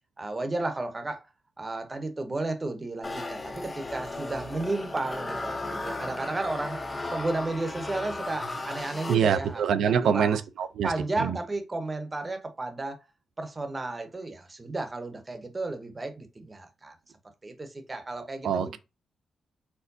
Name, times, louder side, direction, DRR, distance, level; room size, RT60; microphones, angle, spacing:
voice 1, 0.2-1.3 1.6-6.8 7.1-10.4 10.8-13.0 13.4-17.0 17.4-18.8, right 2 dB, 20° right, 0.8 m, -33 dB
sound 1, 3.0-9.7, left 2 dB, 15° left, 0.6 m, -36 dB
voice 2, 9.1-10.9 11.2-11.4 18.4-18.8, right 7 dB, 80° right, 0.5 m, -25 dB
4.5 x 4.4 x 2.7 m
wide cardioid pair, 175°, 0 cm